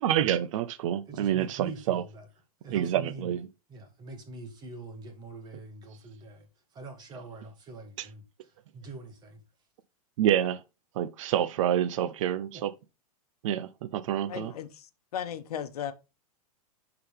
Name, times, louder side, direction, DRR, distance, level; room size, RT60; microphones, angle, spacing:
voice 1, 0.0-2.0 2.7-3.5 10.2-10.6 11.0-12.7 13.4-14.5, right 11 dB, 55° right, 0.6 m, -27 dB
voice 2, 1.1-2.3 2.6-3.3 3.7-9.4 12.5-12.7, right 3 dB, 20° right, 1.8 m, -44 dB
voice 3, 14.3-15.9, left 9 dB, 75° left, 1.0 m, -36 dB
11.0 x 3.9 x 3.3 m
hypercardioid pair, 145°, 19 cm